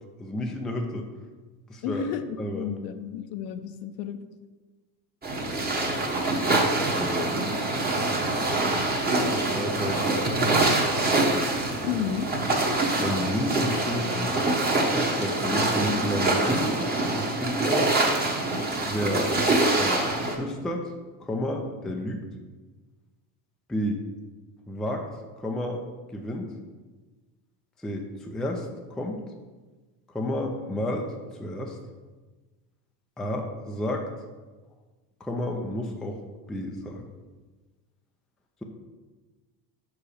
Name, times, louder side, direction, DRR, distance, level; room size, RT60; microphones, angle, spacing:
voice 1, 0.2-1.1 1.7-2.1 2.4-2.8 6.8-7.5 9.3-10.7 13.0-14.4 14.9-16.7 17.1-17.9 18.8-19.3 19.8-20.0 20.3-20.9 21.2-22.2 23.7-24.0 24.7-25.0 25.4-25.8 26.1-26.5 27.8-29.2 30.1-31.1 31.4-31.8 33.2-34.1 35.2-36.2 36.5-37.0, left 1 dB, ahead, 2 dB, 0.4 m, -31 dB
voice 2, 1.8-4.2 11.8-12.3, left 8 dB, 60° left, 9 dB, 0.7 m, -32 dB
sound 1, 5.2-20.3, right 2 dB, 20° right, 1.1 m, -25 dB
5.5 x 4.9 x 5.0 m, 1.3 s
supercardioid pair, 110°, 50 cm